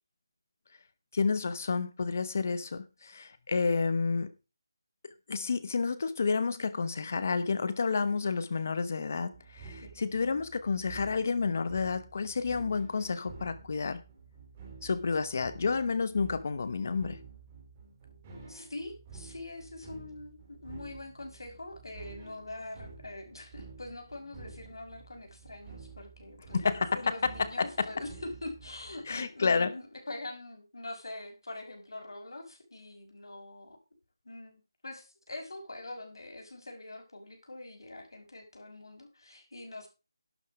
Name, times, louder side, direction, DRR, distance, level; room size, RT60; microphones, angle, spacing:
voice 1, 1.1-4.3 5.3-14.0 14.8-17.2 26.5-27.0 27.6-27.9 29.1-29.7, left 4 dB, 35° left, 1.0 m, -30 dB
sound 1, 9.3-29.2, right 5 dB, 15° right, 2.5 m, -50 dB
voice 2, 18.5-33.8 34.2-39.9, left 2 dB, 85° left, 5.8 m, -44 dB
11.5 x 8.5 x 4.8 m
figure-of-eight pair, 175°, 2 cm